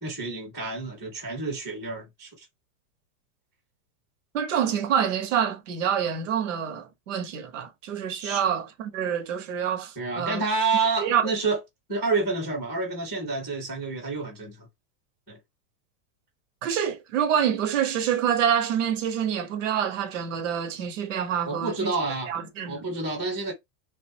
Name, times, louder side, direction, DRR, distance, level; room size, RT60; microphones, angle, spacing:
voice 1, 0.0-2.4 8.2-8.4 10.0-11.6 11.9-14.7 15.3-15.4 21.4-22.3 22.7-23.5, right 4 dB, 5° left, 0.4 m, -29 dB
voice 2, 4.3-10.4 11.0-11.3 16.6-21.9 22.3-22.9, right 8 dB, 50° right, 0.6 m, -27 dB
3.2 x 2.1 x 2.7 m
supercardioid pair, 180°, 48 cm